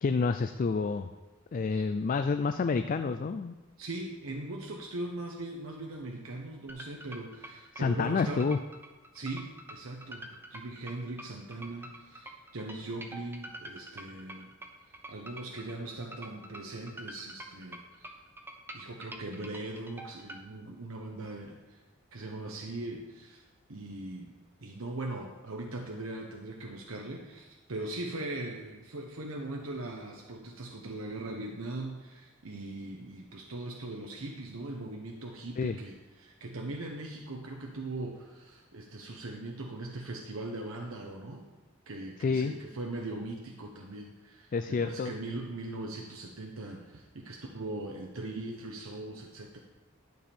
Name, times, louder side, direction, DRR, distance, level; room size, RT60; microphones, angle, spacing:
voice 1, 0.0-1.1 1.5-3.6 7.7-8.6 35.6-35.8 42.2-42.5 44.5-45.1, left 4 dB, 40° left, 9 dB, 0.3 m, -29 dB
voice 2, 3.8-8.5 9.1-14.5 14.8-18.1 18.7-21.8 22.1-23.4 23.7-24.3 24.6-41.4 41.9-49.6, right 2 dB, 75° right, 1 dB, 1.0 m, -40 dB
sound 1, 6.7-20.4, right 1 dB, 10° right, 0.8 m, -46 dB
12.0 x 7.1 x 4.4 m, 1.2 s
head